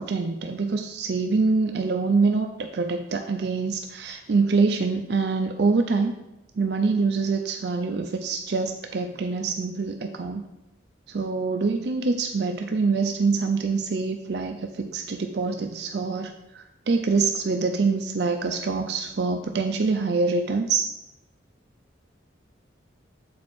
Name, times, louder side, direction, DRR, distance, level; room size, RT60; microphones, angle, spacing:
voice 1, 0.0-6.1 6.6-10.4 11.1-20.9, right 4 dB, 60° right, 5 dB, 0.4 m, -25 dB
7.5 x 4.6 x 4.2 m, 0.93 s
head